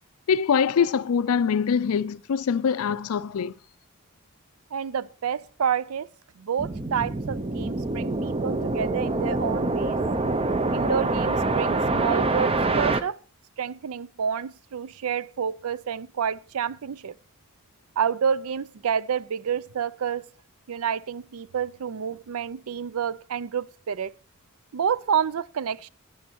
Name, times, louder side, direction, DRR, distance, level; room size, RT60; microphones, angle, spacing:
voice 1, 0.3-3.5, left 6 dB, 75° left, 0.4 m, -23 dB
voice 2, 4.7-6.1 6.4-10.0 10.7-13.2 13.6-17.1 18.0-20.2 20.7-24.1 24.7-25.9, right 7 dB, 70° right, 0.5 m, -29 dB
sound 1, 6.6-13.0, right 2 dB, 25° right, 0.7 m, -25 dB
10.5 x 9.3 x 4.5 m
head